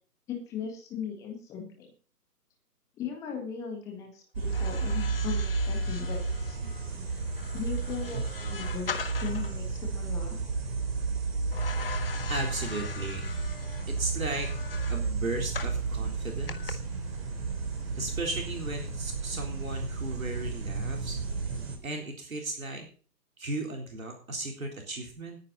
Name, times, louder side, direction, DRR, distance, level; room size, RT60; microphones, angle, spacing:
voice 1, 0.3-1.9 3.0-6.6 7.5-10.4, left 7 dB, 5° left, 2 dB, 1.7 m, -38 dB
sound 1, 4.3-21.8, right 4 dB, 35° right, 3.5 m, -32 dB
sound 2, 4.4-9.6 11.5-15.8 16.5-16.7, left 6 dB, 35° left, 1.4 m, -41 dB
voice 2, 12.3-13.2 13.9-14.5 14.9-16.8 17.9-21.2 21.8-22.8 23.4-25.4, right 2 dB, 55° right, 1 dB, 3.9 m, -35 dB
19.5 x 9.9 x 4.1 m, 0.42 s
figure-of-eight pair, 145°, 49 cm